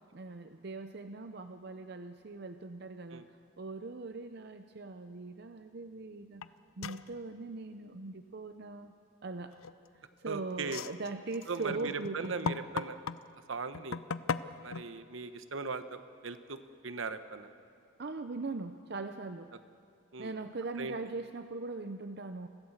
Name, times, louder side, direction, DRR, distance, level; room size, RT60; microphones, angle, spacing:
voice 1, 0.1-6.4 6.8-8.9 9.2-9.6 9.9-12.6 18.0-19.5 20.2-22.5, right 3 dB, 50° right, 8 dB, 0.6 m, -41 dB
sound 1, 6.4-6.5 6.8-7.1 9.5-10.0 10.6-13.2 13.7-14.8, left 5 dB, 85° left, 0.5 m, -37 dB
voice 2, 10.3-10.8 11.5-13.0 13.5-14.0 14.6-17.5 20.1-20.3 20.8-21.0, right 4 dB, 70° right, 11 dB, 1.0 m, -39 dB
25.0 x 15.5 x 7.3 m, 2.4 s
head